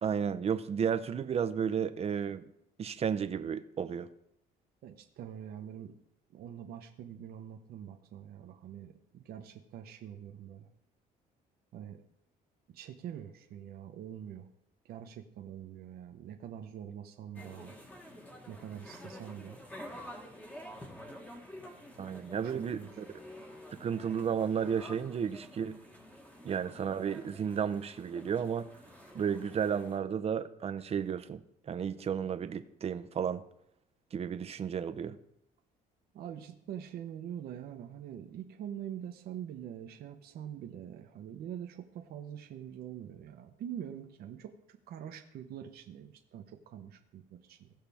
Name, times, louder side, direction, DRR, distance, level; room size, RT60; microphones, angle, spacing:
voice 1, 0.0-2.4 2.8-4.1 22.0-23.0 23.7-25.8 26.4-28.7 29.1-31.4 31.7-33.4 34.1-35.2, right 7 dB, 35° right, 0.7 m, -33 dB
voice 2, 4.8-5.9 6.3-10.7 11.7-12.0 12.7-14.5 14.8-17.7 18.5-19.6 22.3-22.9 36.1-47.7, right 9 dB, 65° right, 1.0 m, -44 dB
sound 1, 17.3-30.0, equal, 10° left, 1.6 m, -49 dB
17.0 x 5.7 x 3.5 m
cardioid pair, 110°, 17 cm